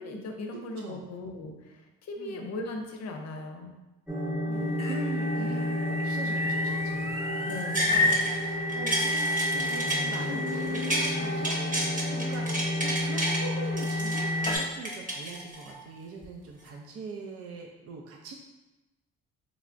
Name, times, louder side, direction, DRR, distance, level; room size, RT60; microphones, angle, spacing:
voice 1, 0.0-3.7 7.4-8.1, left 2 dB, 60° left, 3 dB, 0.6 m, -38 dB
voice 2, 0.5-1.0 2.2-2.5 4.5-18.3, right 3 dB, 50° right, 1 dB, 0.5 m, -42 dB
sound 1, 4.1-14.6, left 1 dB, ahead, 0.9 m, -30 dB
sound 2, 4.5-14.7, left 2 dB, 20° left, 0.6 m, -35 dB
sound 3, 7.5-8.4 8.7-11.1 11.4-13.4 13.8-15.8 16.2-16.3, right 1 dB, 25° right, 0.9 m, -31 dB
3.4 x 3.2 x 2.5 m, 1.1 s
cardioid pair, 90°, 30 cm